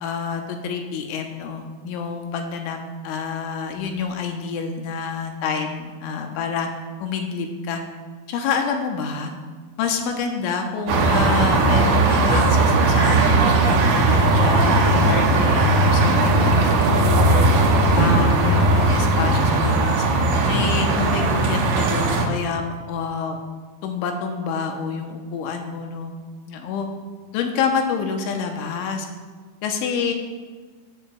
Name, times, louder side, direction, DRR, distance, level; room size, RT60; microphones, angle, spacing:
voice 1, 0.0-2.8 3.0-6.7 7.0-7.8 8.3-9.3 9.8-17.5 17.9-20.1 20.5-23.4 23.8-26.1 26.5-26.9 27.3-29.1 29.6-30.1, left 5 dB, 85° left, 3 dB, 3.2 m, -27 dB
sound 1, 10.9-22.2, right 2 dB, 85° right, 1.9 m, -18 dB
14.5 x 11.5 x 2.3 m, 1.5 s
omnidirectional pair, 5.5 m